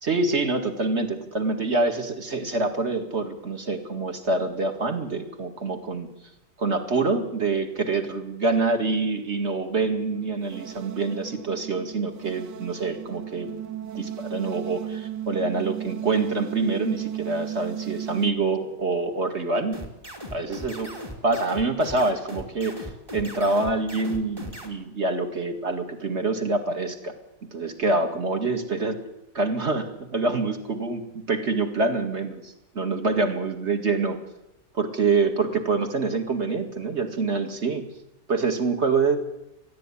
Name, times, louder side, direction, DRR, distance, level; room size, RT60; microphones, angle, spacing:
voice 1, 0.0-6.1 6.6-13.6 13.9-19.8 20.3-20.9 21.2-27.1 27.5-29.0 29.3-34.2 34.7-37.9 38.3-39.2, right 3 dB, 40° right, 6 dB, 2.4 m, -26 dB
sound 1, 10.1-18.3, right 11 dB, 85° right, 1.6 m, -35 dB
sound 2, 19.7-24.7, left 1 dB, 15° right, 2.7 m, -38 dB
20.0 x 13.5 x 10.0 m, 0.88 s
omnidirectional pair, 1.9 m